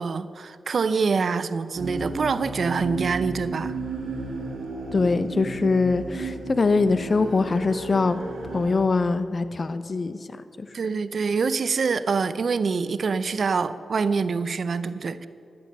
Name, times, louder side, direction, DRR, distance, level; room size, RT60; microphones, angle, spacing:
voice 1, 0.0-3.8 10.7-15.3, right 5 dB, 65° right, 13 dB, 0.5 m, -25 dB
sound 1, 1.7-8.8, right 3 dB, 85° right, 1.7 m, -34 dB
voice 2, 4.9-8.2 8.5-10.2 10.6-10.7, left 3 dB, 50° left, 12 dB, 0.6 m, -23 dB
12.0 x 7.2 x 6.6 m, 2.6 s
cardioid pair, 50°, 0 cm